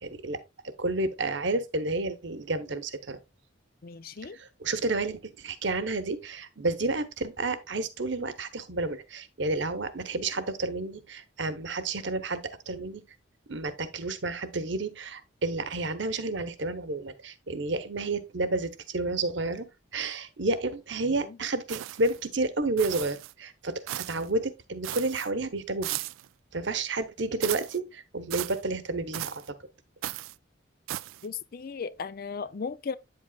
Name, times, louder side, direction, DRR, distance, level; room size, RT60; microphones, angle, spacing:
voice 1, 0.0-3.2 4.3-12.4 12.7-13.0 13.5-26.0 26.5-29.4, right 2 dB, 60° right, 1.0 m, -31 dB
voice 2, 3.8-4.4 21.1-21.4 31.2-33.0, left 5 dB, 45° left, 0.4 m, -36 dB
sound 1, 21.7-22.2 22.8-23.3 23.9-24.3 24.8-25.3 25.8-26.3 27.4-27.8 28.3-28.6 29.1-29.5 30.0-30.4 30.9-31.3, right 15 dB, 80° right, 0.3 m, -36 dB
9.1 x 7.6 x 2.3 m
head